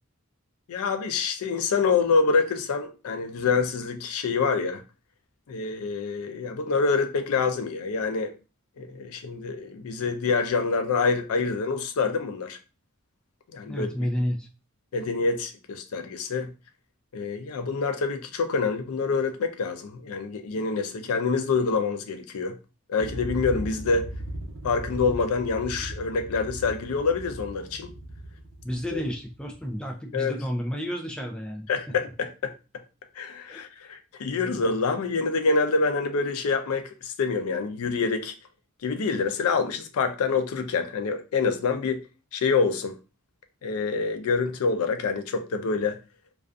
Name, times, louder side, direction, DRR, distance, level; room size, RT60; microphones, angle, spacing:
voice 1, 0.7-4.8 5.5-8.3 8.8-12.6 13.5-14.1 14.9-16.5 17.1-22.5 22.9-24.1 24.6-27.9 28.9-29.0 30.1-30.3 31.7-32.5 33.2-38.3 38.8-42.0 42.3-43.0 43.6-46.0, left 4 dB, 85° left, 0.4 m, -26 dB
voice 2, 13.7-14.5 28.6-32.0 33.5-33.6 34.3-34.5, equal, 5° left, 0.3 m, -31 dB
sound 1, 23.0-29.7, right 1 dB, 55° right, 0.7 m, -38 dB
2.4 x 2.3 x 2.4 m
head